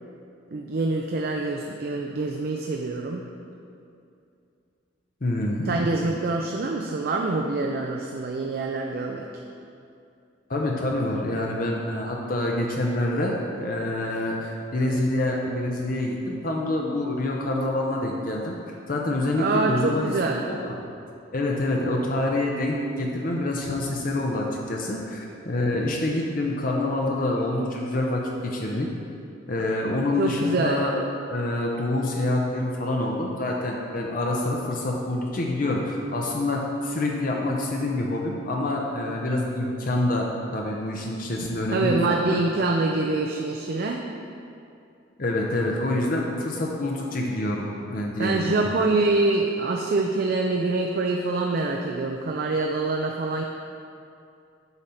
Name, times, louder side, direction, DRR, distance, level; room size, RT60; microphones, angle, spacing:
voice 1, 0.5-3.3 5.7-9.3 19.3-20.5 30.2-30.8 41.7-44.1 48.2-53.4, right 3 dB, 50° right, 1 dB, 0.4 m, -25 dB
voice 2, 5.2-5.8 10.5-18.6 18.9-20.1 20.4-20.7 21.3-28.9 29.5-40.3 40.5-42.4 45.2-48.7, left 1 dB, 45° left, -1 dB, 0.7 m, -26 dB
8.0 x 5.5 x 4.3 m, 2.5 s
head